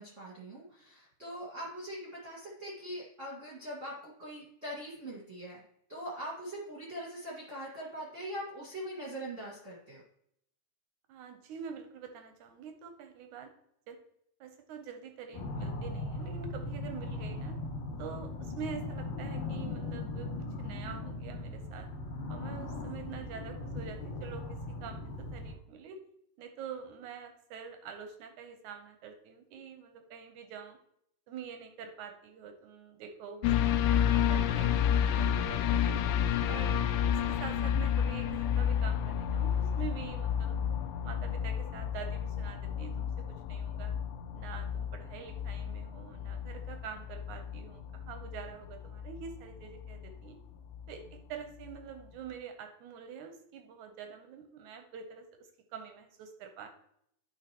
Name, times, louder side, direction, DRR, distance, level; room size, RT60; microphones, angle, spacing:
voice 1, 0.0-5.6 5.9-10.0 36.4-36.6, equal, 30° right, -7 dB, 1.4 m, -42 dB
voice 2, 11.1-13.5 13.9-14.0 14.4-17.6 18.0-20.3 20.6-21.9 22.3-26.0 26.4-30.8 31.3-34.0 34.3-36.0 36.5-36.8 37.1-40.6 41.0-43.1 43.5-43.9 44.3-50.4 50.9-55.3 55.7-56.7, right 7 dB, 75° right, 6 dB, 1.9 m, -46 dB
sound 1, 15.3-25.6, left 2 dB, 60° left, 2.0 m, -39 dB
sound 2, 33.4-51.2 51.6-51.7, left 9 dB, 85° left, 2.3 m, -31 dB
11.0 x 4.8 x 2.9 m, 0.73 s
omnidirectional pair, 4.0 m